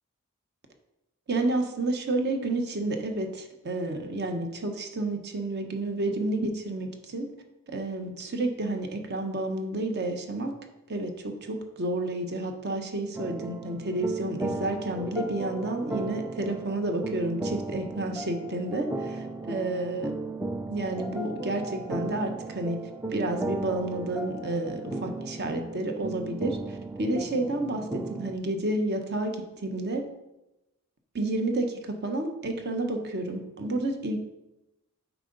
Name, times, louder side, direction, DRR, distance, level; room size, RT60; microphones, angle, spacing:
voice 1, 1.3-7.3 7.7-10.6 10.9-20.2 20.7-22.8 23.1-30.1 31.1-34.2, right 2 dB, 50° right, 5 dB, 0.9 m, -30 dB
sound 1, 13.1-28.4, right 2 dB, 10° right, 0.3 m, -36 dB
9.0 x 4.7 x 3.9 m, 0.96 s
head